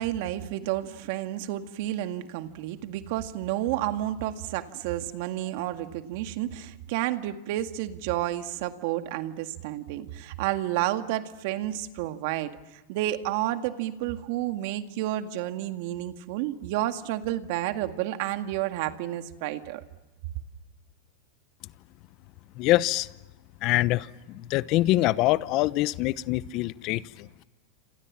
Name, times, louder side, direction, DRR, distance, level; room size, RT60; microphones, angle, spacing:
voice 1, 0.0-19.8, right 14 dB, 60° right, 8 dB, 1.9 m, -31 dB
voice 2, 22.6-23.1 23.6-27.4, left 17 dB, 45° left, 17 dB, 0.9 m, -25 dB
28.0 x 27.5 x 7.4 m, 1.1 s
hypercardioid pair, 125°, 0 cm